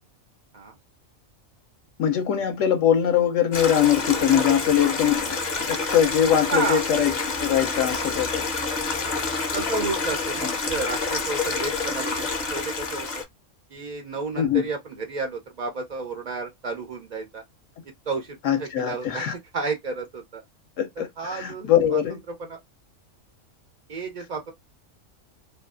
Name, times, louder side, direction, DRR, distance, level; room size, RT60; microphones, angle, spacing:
voice 1, 2.0-7.1 7.4-8.4 14.4-14.6 18.4-19.3 20.8-22.2, left 9 dB, 70° left, 0.9 m, -22 dB
Stream, 3.5-13.2, left 4 dB, 45° left, 0.6 m, -28 dB
voice 2, 6.5-6.8 9.5-13.1 13.7-17.4 18.1-20.4 21.0-22.0 22.3-22.6 23.9-24.5, right 3 dB, 80° right, 0.4 m, -31 dB
2.6 x 2.3 x 2.3 m
omnidirectional pair, 1.4 m